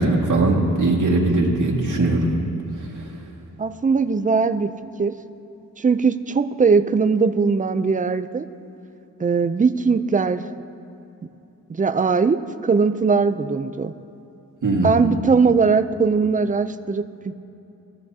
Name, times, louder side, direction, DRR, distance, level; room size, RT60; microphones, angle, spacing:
voice 1, 0.0-2.3 2.8-3.1 14.6-15.0, right 2 dB, 60° right, -4 dB, 2.0 m, -20 dB
voice 2, 3.6-4.7 5.0-5.1 5.8-8.5 9.2-10.4 11.7-13.9 14.8-17.3, right 5 dB, 25° right, 10 dB, 0.4 m, -20 dB
20.5 x 14.0 x 2.8 m, 2.8 s
wide cardioid pair, 115°, 34 cm